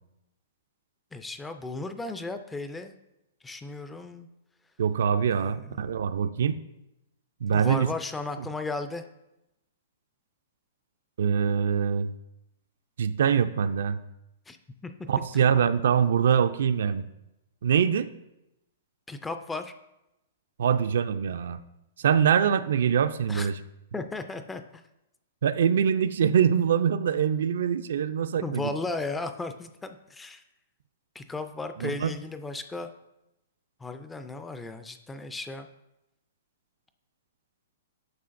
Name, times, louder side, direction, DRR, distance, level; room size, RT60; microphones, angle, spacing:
voice 1, 1.1-2.9 3.4-4.3 5.3-6.0 7.5-9.0 14.5-14.6 14.8-14.9 15.3-15.5 19.1-19.7 23.3-23.5 23.9-24.8 28.4-30.4 31.2-32.9 33.8-35.7, left 3 dB, 5° left, 8 dB, 0.3 m, -35 dB
voice 2, 4.8-6.6 7.4-7.9 8.4-8.5 11.2-12.1 13.0-14.0 15.1-17.0 17.6-18.1 20.6-21.6 22.0-23.5 25.4-28.7 31.8-32.1, right 7 dB, 65° right, 11 dB, 0.4 m, -24 dB
9.5 x 6.2 x 2.5 m, 0.90 s
hypercardioid pair, 165°, 0 cm